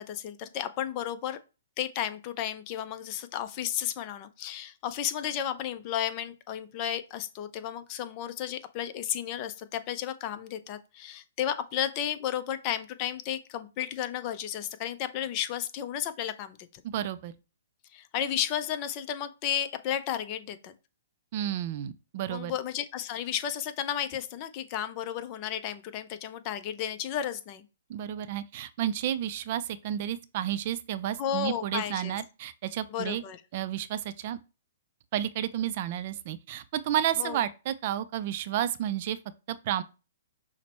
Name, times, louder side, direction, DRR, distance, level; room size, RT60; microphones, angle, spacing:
voice 1, 0.0-1.4 1.8-16.8 17.9-20.7 22.3-27.6 31.2-32.2 32.9-33.4 37.2-37.4, left 10 dB, 35° left, 0.5 m, -33 dB
voice 2, 16.8-17.3 21.3-22.5 27.9-33.2 33.5-34.4 35.1-39.2 39.5-39.8, right 11 dB, 45° right, 0.4 m, -31 dB
5.8 x 2.1 x 4.3 m
hypercardioid pair, 135°, 0 cm